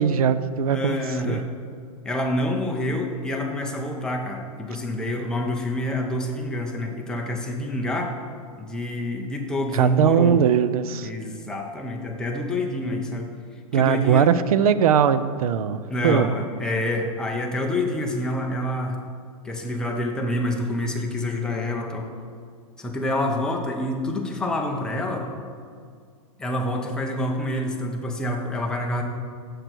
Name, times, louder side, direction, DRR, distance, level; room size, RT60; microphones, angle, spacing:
voice 1, 0.0-1.0 1.2-1.4 9.7-11.1 13.7-16.3, right 8 dB, 90° right, 13 dB, 0.4 m, -20 dB
voice 2, 0.7-1.5 2.0-8.1 8.6-10.4 11.0-13.3 13.7-14.3 15.9-19.0 19.4-22.1 22.8-25.3 26.4-29.0, left 1 dB, 5° left, 1 dB, 0.5 m, -27 dB
6.6 x 6.1 x 4.4 m, 2.1 s
hypercardioid pair, 150°, 18 cm